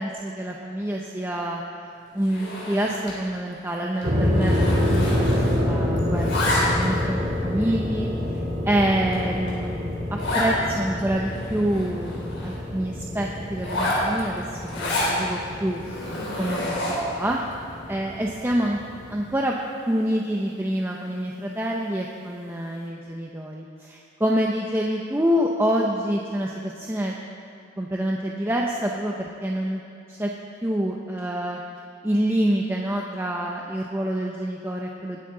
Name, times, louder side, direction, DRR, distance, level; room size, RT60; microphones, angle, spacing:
voice 1, 0.0-1.6 2.1-8.1 8.6-14.4 14.7-15.8 16.4-17.4 17.9-18.8 19.1-19.6 19.9-27.1 27.8-29.8 30.1-30.3 30.6-31.6 32.0-35.2, right 1 dB, 10° right, -1 dB, 0.6 m, -27 dB
Zipper (clothing), 2.2-3.2 3.5-3.8 4.0-5.7 6.0-7.0 7.6-7.7 8.3-8.4 8.8-8.9 9.1-9.2 9.5-9.6 10.2-10.5 11.0-11.1 11.3-12.6 13.5-15.2 15.7-17.1, left 1 dB, 75° left, 3.7 m, -29 dB
sound 1, 4.0-19.2, left 1 dB, 55° right, 3.6 m, -27 dB
20.5 x 9.2 x 3.8 m, 2.5 s
head